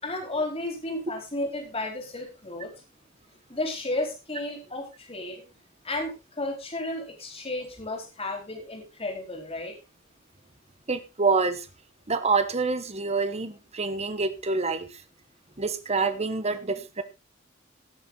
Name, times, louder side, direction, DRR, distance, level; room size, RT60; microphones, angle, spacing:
voice 1, 0.0-2.7 3.5-5.4 5.8-9.7, left 2 dB, 30° left, 1 dB, 4.2 m, -33 dB
voice 2, 10.9-11.7 12.1-14.9 15.6-17.0, right 4 dB, 35° right, 10 dB, 1.2 m, -26 dB
17.5 x 6.9 x 3.9 m, 0.28 s
head